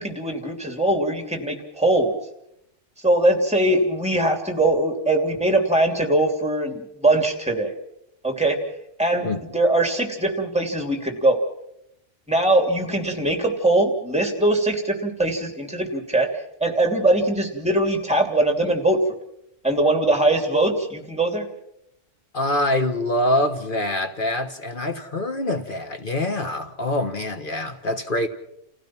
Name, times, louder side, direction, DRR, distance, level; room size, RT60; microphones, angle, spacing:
voice 1, 0.0-2.1 3.0-7.7 8.2-8.6 9.0-11.4 12.3-16.3 16.6-19.0 19.6-21.5, right 1 dB, 5° right, 3.0 m, -21 dB
voice 2, 22.3-28.3, left 1 dB, 45° left, 1.6 m, -25 dB
28.5 x 16.0 x 6.0 m
omnidirectional pair, 1.3 m